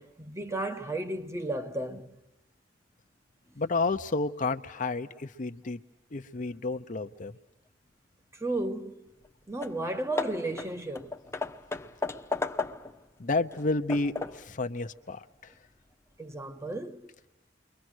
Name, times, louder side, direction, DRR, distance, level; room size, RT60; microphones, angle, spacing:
voice 1, 0.0-2.2 8.3-9.1 9.5-11.2 16.2-17.1, right 2 dB, 15° right, 0.9 m, -34 dB
voice 2, 3.6-5.8 6.1-7.4 13.2-15.5, left 3 dB, 45° left, 0.8 m, -31 dB
Hammer / Wood, 9.2-9.3 9.6-9.8 10.2-13.0 13.5-14.5, left 3 dB, 15° left, 0.9 m, -35 dB
29.5 x 23.5 x 6.3 m
head